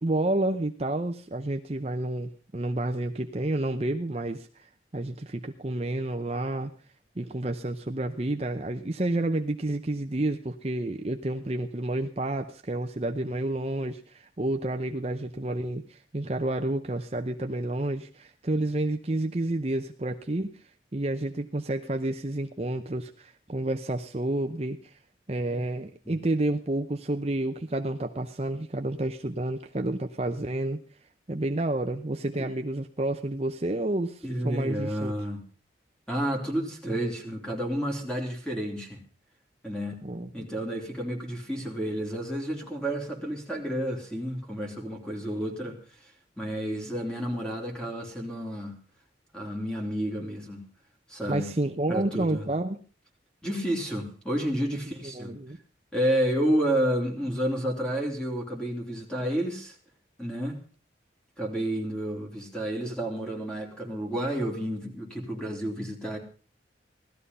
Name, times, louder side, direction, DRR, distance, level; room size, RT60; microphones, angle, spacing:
voice 1, 0.0-6.7 7.2-20.5 20.9-24.9 25.3-30.8 31.3-35.1 40.0-40.5 51.3-52.8 54.7-54.8 55.1-55.6, right 1 dB, 35° right, 5 dB, 0.8 m, -30 dB
voice 2, 34.2-35.4 36.1-39.0 39.6-40.0 40.3-45.8 46.4-48.7 49.3-50.6 51.1-51.5 51.9-52.5 53.4-55.4 55.9-59.7 60.2-60.6 61.4-66.2, right 1 dB, 5° left, 0 dB, 3.4 m, -30 dB
17.5 x 13.0 x 5.5 m, 0.39 s
head